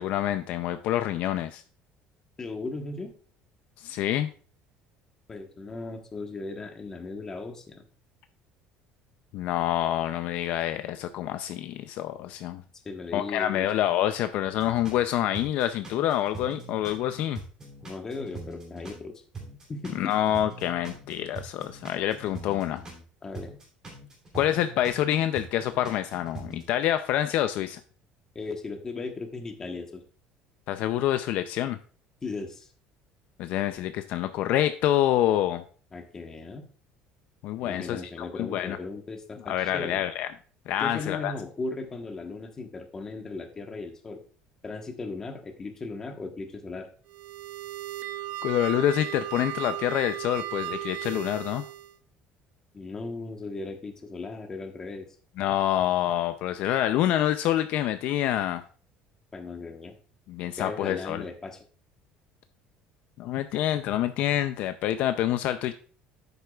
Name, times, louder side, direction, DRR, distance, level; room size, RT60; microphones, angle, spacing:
voice 1, 0.0-1.6 3.8-4.3 9.3-12.6 13.1-17.4 19.9-22.8 24.3-27.8 30.7-31.8 33.4-35.6 37.4-38.8 39.5-40.3 40.7-41.3 48.4-51.6 55.4-58.6 60.3-61.2 63.2-65.7, left 12 dB, 55° left, 10 dB, 0.4 m, -27 dB
voice 2, 2.4-3.1 5.3-7.8 12.8-13.7 17.8-19.2 19.7-20.1 23.2-23.5 28.3-30.0 32.2-32.7 35.9-36.7 37.6-40.0 40.8-44.2 44.6-46.9 52.7-55.1 59.3-59.9 60.6-61.6, left 3 dB, 20° left, 5 dB, 1.1 m, -37 dB
sound 1, 14.6-15.0 15.3-19.0 19.3-23.0 23.3-26.6, right 3 dB, 20° right, 2.9 m, -43 dB
sound 2, 47.1-52.0, right 14 dB, 60° right, 0.6 m, -36 dB
10.5 x 8.0 x 2.3 m, 0.42 s
cardioid pair, 170°, 3 cm